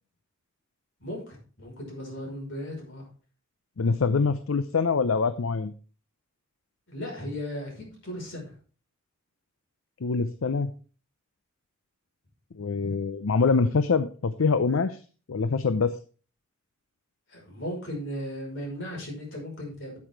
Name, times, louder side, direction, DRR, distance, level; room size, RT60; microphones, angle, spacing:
voice 1, 1.0-3.1 6.9-8.5 17.3-20.0, equal, 65° left, -1 dB, 5.6 m, -36 dB
voice 2, 3.8-5.7 10.0-10.7 12.6-15.0 15.3-15.9, left 4 dB, 80° left, 12 dB, 0.6 m, -24 dB
8.8 x 8.6 x 4.6 m, 0.39 s
head